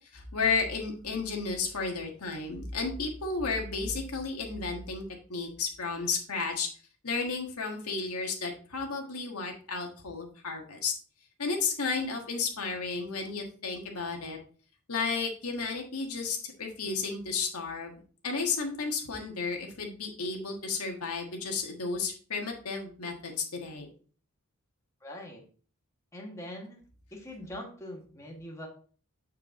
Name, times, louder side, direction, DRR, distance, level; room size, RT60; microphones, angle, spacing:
voice 1, 0.1-6.7 7.0-10.9 11.4-14.4 14.9-23.9, left 4 dB, 75° left, 2 dB, 1.5 m, -33 dB
voice 2, 25.0-25.4 26.1-26.8 27.1-28.7, left 1 dB, 15° left, -1 dB, 1.5 m, -42 dB
7.6 x 4.7 x 3.7 m, 0.41 s
head